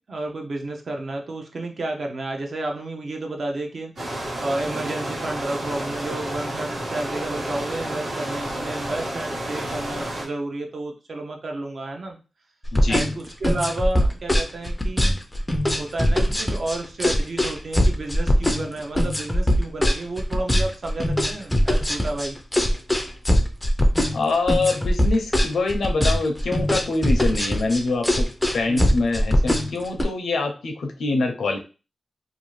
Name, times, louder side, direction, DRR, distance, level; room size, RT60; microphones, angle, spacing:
voice 1, 0.0-12.2 12.9-15.2 15.8-22.4 28.7-29.0, right 2 dB, 50° right, 2 dB, 0.6 m, -31 dB
sound 1, 4.0-10.2, right 1 dB, 85° right, 1.3 m, -30 dB
sound 2, 12.6-30.0, equal, 10° left, 0.4 m, -21 dB
voice 2, 12.7-13.0 24.1-31.6, left 3 dB, 85° left, 4 dB, 0.5 m, -25 dB
2.6 x 2.4 x 3.1 m, 0.33 s
wide cardioid pair, 150°, 0 cm